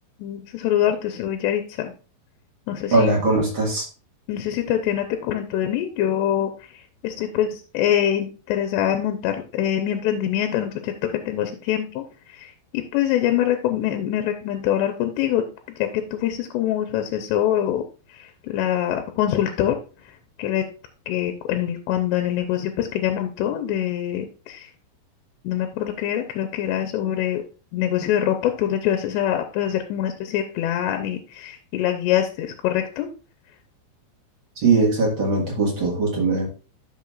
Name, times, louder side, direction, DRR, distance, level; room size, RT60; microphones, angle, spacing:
voice 1, 0.2-1.9 2.7-3.1 4.3-6.5 7.0-10.9 11.3-12.0 12.4-15.4 15.8-17.8 18.5-19.7 20.4-20.6 21.1-24.7 25.4-27.4 27.7-33.1, left 11 dB, 85° left, 6 dB, 2.8 m, -24 dB
voice 2, 2.9-3.8 34.6-36.5, right 3 dB, 50° right, -2 dB, 1.5 m, -20 dB
11.5 x 6.2 x 2.4 m, 0.36 s
omnidirectional pair, 5.0 m